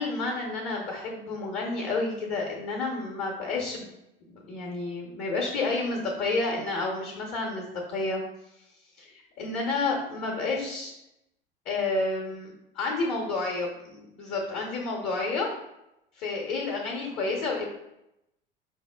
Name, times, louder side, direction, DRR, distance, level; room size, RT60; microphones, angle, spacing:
voice 1, 0.0-3.9 4.3-8.2 9.0-10.9 11.7-12.5 12.8-15.5 16.2-17.6, left 3 dB, 40° left, 0 dB, 0.7 m, -30 dB
5.1 x 2.0 x 2.2 m, 0.86 s
figure-of-eight pair, 75°, 30 cm